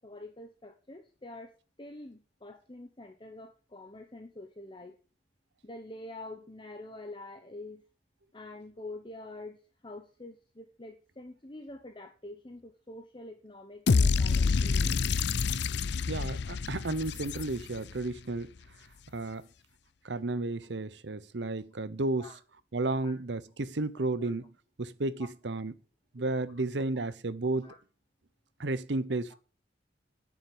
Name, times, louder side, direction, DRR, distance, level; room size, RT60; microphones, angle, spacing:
voice 1, 0.0-5.0 5.6-7.8 8.3-15.0 22.2-22.4 23.0-23.1 24.0-24.3 26.2-26.3 27.6-27.8, left 2 dB, 25° left, 1.1 m, -46 dB
sound 1, 13.9-18.0, left 5 dB, 60° left, 0.5 m, -27 dB
voice 2, 16.1-18.5 19.1-19.5 20.0-22.3 22.7-24.5 24.8-25.7 26.1-27.7 28.6-29.3, right 2 dB, 65° right, 0.8 m, -32 dB
9.7 x 7.1 x 8.6 m
head